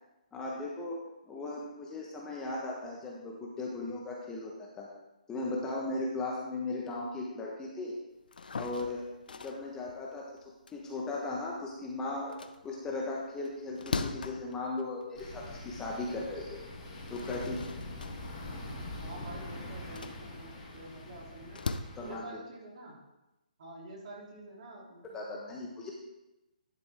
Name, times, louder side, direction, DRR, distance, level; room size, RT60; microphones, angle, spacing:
voice 1, 0.3-1.0 1.3-4.9 5.3-8.0 8.5-9.0 9.4-10.3 10.7-12.4 12.6-16.6 17.1-17.6 22.0-22.4 25.1-25.9, left 2 dB, 10° left, -3 dB, 1.1 m, -37 dB
sound 1, 8.2-11.8 12.2-15.7 16.1-16.2 16.8-21.8, left 4 dB, 75° left, 0.6 m, -41 dB
sound 2, 15.1-22.2, left 1 dB, 35° left, 2.4 m, -43 dB
voice 2, 19.0-21.6 22.0-23.0 23.6-25.6, right 1 dB, 50° right, -2 dB, 2.9 m, -48 dB
11.0 x 6.7 x 3.5 m, 0.96 s
hypercardioid pair, 155°, 5 cm